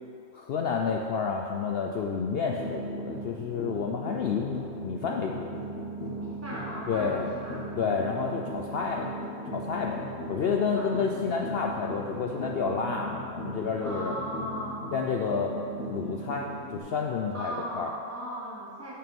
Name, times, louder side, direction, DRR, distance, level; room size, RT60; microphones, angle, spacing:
voice 1, 0.3-5.5 6.9-7.2 7.8-9.1 9.5-10.0 10.3-14.1 14.9-15.5 15.9-17.9, left 5 dB, 75° left, 0 dB, 0.5 m, -30 dB
sound 1, 2.5-16.8, right 1 dB, 45° left, 1.4 m, -38 dB
voice 2, 6.2-7.6 10.7-10.9 13.8-14.8 17.3-18.9, equal, 15° right, -6 dB, 0.8 m, -37 dB
6.7 x 5.8 x 5.3 m, 2.4 s
omnidirectional pair, 1.5 m